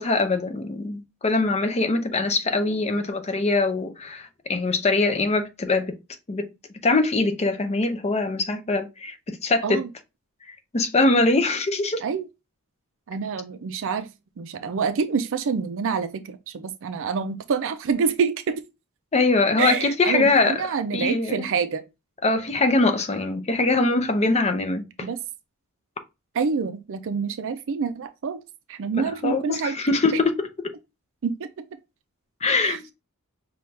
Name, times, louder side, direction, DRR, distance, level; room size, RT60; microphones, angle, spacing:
voice 1, 0.0-6.0 6.3-6.5 6.8-9.8 10.7-12.0 19.1-20.6 20.9-21.5 22.2-25.1 29.2-30.4 32.4-32.8, left 3 dB, 30° left, 0.6 m, -22 dB
voice 2, 13.1-14.1 14.4-18.6 19.6-21.8 25.0-25.2 26.3-28.4 28.7-29.8 31.2-31.5 32.6-32.8, right 5 dB, 60° right, 0.4 m, -27 dB
5.6 x 2.3 x 3.2 m
head